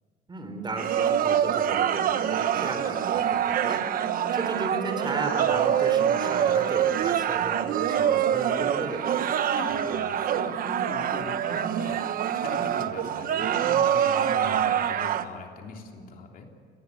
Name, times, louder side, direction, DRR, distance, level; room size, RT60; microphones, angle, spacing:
voice 1, 0.3-9.1, right 3 dB, 25° right, 7 dB, 4.0 m, -34 dB
sound 1, 0.8-15.2, right 9 dB, 55° right, 1.2 m, -25 dB
voice 2, 9.5-12.0 12.3-16.5, left 4 dB, 60° left, 2 dB, 3.4 m, -41 dB
26.5 x 19.0 x 8.5 m, 2.2 s
cardioid pair, 110°, 17 cm